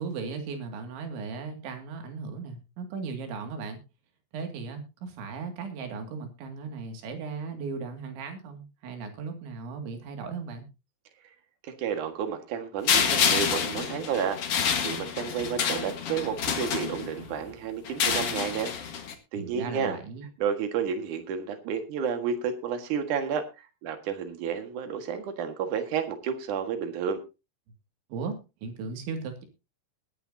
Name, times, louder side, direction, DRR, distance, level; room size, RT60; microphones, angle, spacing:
voice 1, 0.0-3.8 4.3-10.7 19.3-20.3 28.1-29.5, right 5 dB, 85° right, 5 dB, 4.6 m, -37 dB
voice 2, 11.6-18.7 19.3-20.0 20.4-27.2, right 7 dB, 55° right, 7 dB, 2.6 m, -31 dB
sound 1, 12.9-17.3 17.9-19.1, left 7 dB, 60° left, 1.5 m, -28 dB
20.5 x 10.0 x 2.8 m, 0.28 s
omnidirectional pair, 5.2 m